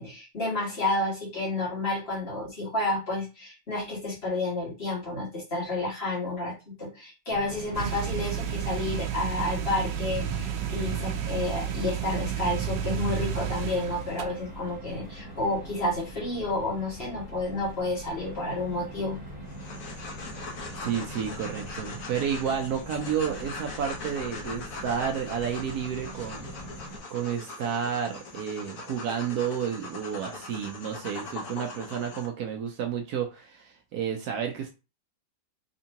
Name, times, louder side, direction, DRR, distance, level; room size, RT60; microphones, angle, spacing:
voice 1, 0.0-19.2, left 2 dB, 35° left, -6 dB, 2.0 m, -30 dB
sound 1, 7.3-27.0, right 1 dB, 20° right, 1.6 m, -42 dB
sound 2, 7.7-14.2, right 9 dB, 90° right, 1.3 m, -31 dB
sound 3, 19.5-32.3, left 3 dB, 60° left, 1.1 m, -41 dB
voice 2, 20.8-26.5 27.1-34.7, right 8 dB, 70° right, 4 dB, 1.1 m, -31 dB
3.7 x 3.3 x 2.8 m, 0.30 s
omnidirectional pair, 1.9 m